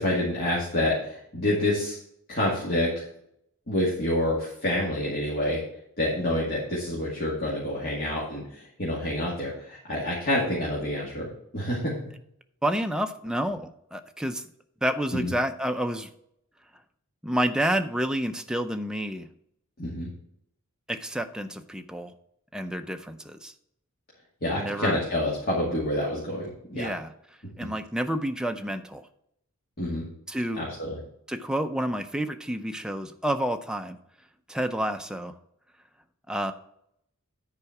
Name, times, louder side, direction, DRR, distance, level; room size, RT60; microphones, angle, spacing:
voice 1, 0.0-2.0 2.3-3.1 3.7-5.6 6.0-11.3 11.5-11.9 15.2-15.3 19.8-20.1 24.4-26.9 29.8-30.0 30.5-31.0, left 1 dB, 45° left, -5 dB, 2.2 m, -27 dB
voice 2, 12.6-14.4 14.8-16.1 17.2-19.3 20.9-22.1 22.5-23.5 24.6-25.0 26.7-27.1 27.6-29.1 30.3-30.6 31.3-34.0 34.5-35.3 36.3-36.5, right 1 dB, 5° right, 7 dB, 0.5 m, -29 dB
9.8 x 4.8 x 5.9 m, 0.73 s
head